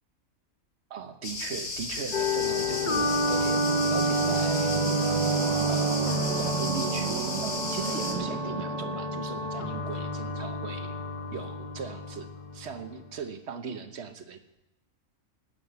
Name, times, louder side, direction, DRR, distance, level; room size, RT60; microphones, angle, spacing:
voice 1, 0.9-6.1 6.4-10.9 11.3-14.4, right 6 dB, 55° right, 8 dB, 1.3 m, -39 dB
sound 1, 1.2-8.1, left 3 dB, 85° left, 2.3 m, -35 dB
sound 2, 2.1-13.1, left 1 dB, 40° left, 0.8 m, -30 dB
Singing / Musical instrument, 2.2-11.4, right 8 dB, 85° right, 1.1 m, -33 dB
13.0 x 9.2 x 6.8 m, 0.91 s
omnidirectional pair, 1.4 m